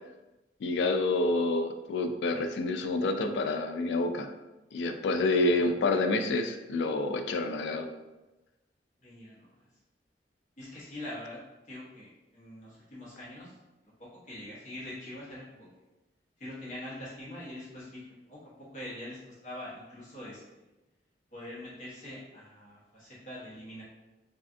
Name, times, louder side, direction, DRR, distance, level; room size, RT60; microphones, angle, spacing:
voice 1, 0.6-4.3 4.7-7.9, left 2 dB, 80° left, 7 dB, 0.3 m, -28 dB
voice 2, 5.4-6.0 9.0-9.7 10.6-11.4 11.6-13.6 14.0-15.7 16.4-20.6 21.3-23.8, left 1 dB, 45° left, -9 dB, 1.0 m, -44 dB
3.3 x 2.4 x 2.5 m, 1.1 s
head